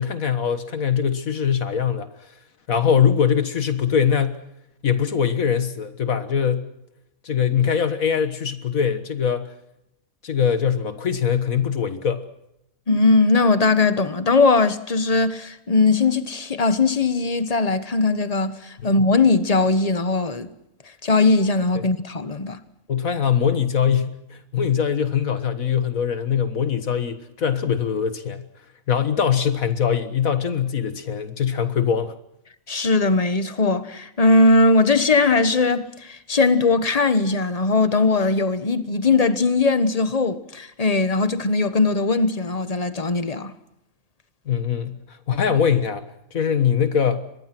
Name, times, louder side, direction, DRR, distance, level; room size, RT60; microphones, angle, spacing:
voice 1, 0.0-2.1 2.7-4.4 4.8-6.7 7.2-9.5 10.2-12.2 18.8-18.9 22.9-28.4 28.9-32.1 44.5-45.0 45.3-46.0 46.3-47.2, left 7 dB, 70° left, 1.8 m, -22 dB
voice 2, 12.9-20.5 21.0-22.6 32.7-43.5, left 3 dB, 30° left, 1.3 m, -19 dB
25.5 x 21.0 x 6.1 m
omnidirectional pair, 1.5 m